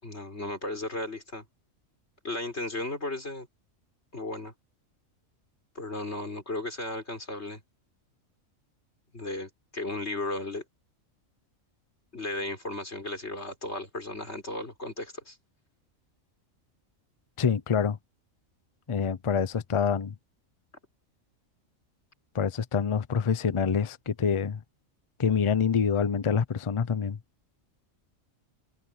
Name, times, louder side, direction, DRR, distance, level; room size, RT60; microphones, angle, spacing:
voice 1, 0.0-1.4 2.2-3.5 4.1-4.5 5.7-7.6 9.1-10.6 12.1-15.4, left 2 dB, 55° left, 5.1 m, -35 dB
voice 2, 17.4-18.0 18.9-20.1 22.3-24.6 25.2-27.2, left 6 dB, 30° left, 0.6 m, -26 dB
omnidirectional pair, 1.4 m